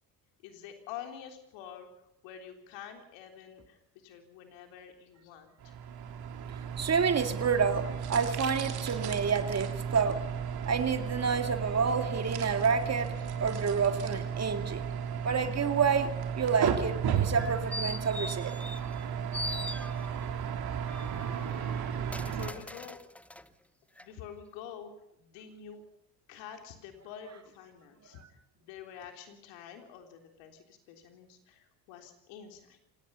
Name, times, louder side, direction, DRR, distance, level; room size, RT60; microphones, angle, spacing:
voice 1, 0.4-1.9 2.2-5.7 22.2-23.0 24.0-24.9 25.2-25.8 26.3-32.8, left 8 dB, 75° left, 5 dB, 3.6 m, -47 dB
sound 1, 5.6-22.5, right 7 dB, 55° right, 3.2 m, -34 dB
voice 2, 6.8-10.2 10.7-13.1 13.4-14.9 15.2-16.1 16.3-18.5, right 5 dB, 35° right, 8 dB, 2.2 m, -29 dB
sound 2, 17.2-19.0 19.3-20.3 20.9-23.5 24.0-24.1, left 1 dB, 5° left, 0.8 m, -41 dB
26.0 x 18.0 x 5.6 m, 0.83 s
hypercardioid pair, 65°, 45 cm